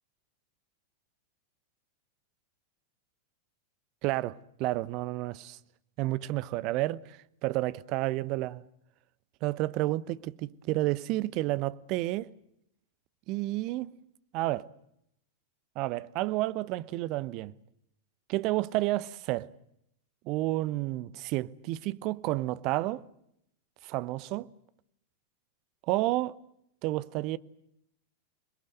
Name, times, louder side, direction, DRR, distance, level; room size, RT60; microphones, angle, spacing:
voice 1, 4.0-5.6 6.0-8.6 9.4-12.3 13.3-13.9 14.3-14.7 15.7-17.5 18.3-19.5 20.2-23.1 23.8-24.5 25.9-26.4 26.8-27.4, right 18 dB, 40° right, 0.9 m, -30 dB
27.5 x 22.0 x 7.9 m
figure-of-eight pair, 90°, 0 cm